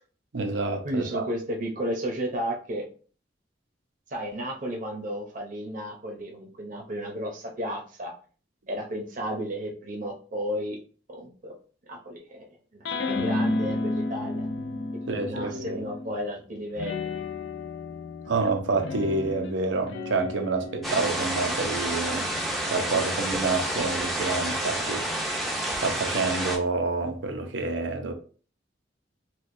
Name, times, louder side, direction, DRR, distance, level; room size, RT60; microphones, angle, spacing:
voice 1, 0.3-1.3 15.1-15.8 18.3-22.3 22.7-25.0 25.3-28.1, right 3 dB, 85° right, 0.7 m, -28 dB
voice 2, 0.8-2.8 4.1-8.1 8.7-10.8 11.1-11.6 11.9-12.4 12.7-14.5 15.1-17.2, equal, 45° right, 0.7 m, -33 dB
sound 1, 12.8-16.2 16.7-23.5, left 2 dB, 70° left, 0.4 m, -33 dB
sound 2, 20.8-26.6, right 1 dB, ahead, 0.6 m, -29 dB
4.4 x 2.2 x 2.6 m
head